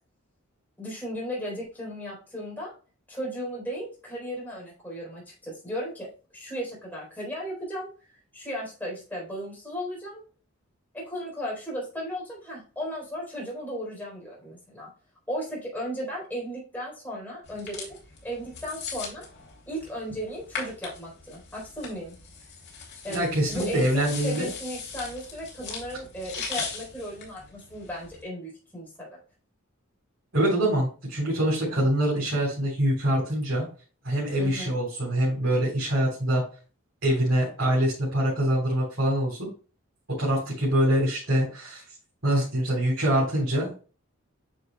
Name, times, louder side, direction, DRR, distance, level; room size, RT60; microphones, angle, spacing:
voice 1, 0.8-2.7 3.1-6.1 6.3-7.9 8.3-10.2 10.9-14.9 15.3-18.0 18.2-19.3 19.7-22.2 23.0-29.2 34.4-34.7, equal, 10° left, -4 dB, 4.0 m, -35 dB
sound 1, 17.5-28.2, left 5 dB, 50° left, 2.8 m, -40 dB
voice 2, 23.1-24.5 30.3-33.6 34.0-36.4 37.0-39.5 40.2-41.8 42.2-43.8, right 1 dB, 60° right, -8 dB, 4.0 m, -24 dB
9.3 x 6.3 x 2.3 m, 0.37 s
head